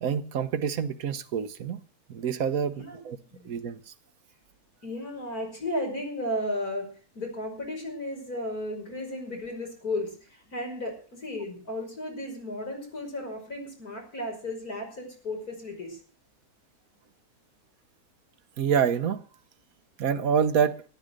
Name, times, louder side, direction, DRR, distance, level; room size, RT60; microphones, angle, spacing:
voice 1, 0.0-1.8 2.1-3.2 3.4-3.8 18.6-19.2 20.0-20.8, right 7 dB, 65° right, 1.4 m, -27 dB
voice 2, 4.8-6.9 7.2-10.2 10.5-16.0, left 1 dB, 75° left, 6.0 m, -34 dB
13.5 x 11.5 x 6.5 m
omnidirectional pair, 1.6 m